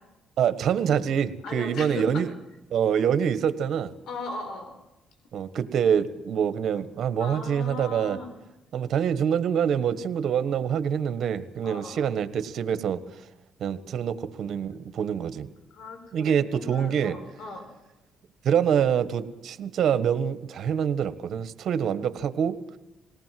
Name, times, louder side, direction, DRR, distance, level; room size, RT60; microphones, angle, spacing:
voice 1, 0.4-2.3 2.7-3.9 5.3-8.2 8.7-13.0 13.6-15.5 16.1-17.2 18.4-22.6, right 8 dB, 65° right, 12 dB, 1.4 m, -25 dB
voice 2, 1.4-2.1 4.1-4.7 7.2-8.3 11.6-12.1 14.6-14.8 15.7-17.7, left 3 dB, 75° left, 6 dB, 5.3 m, -38 dB
21.5 x 18.0 x 7.7 m, 0.96 s
cardioid pair, 90°, 0 cm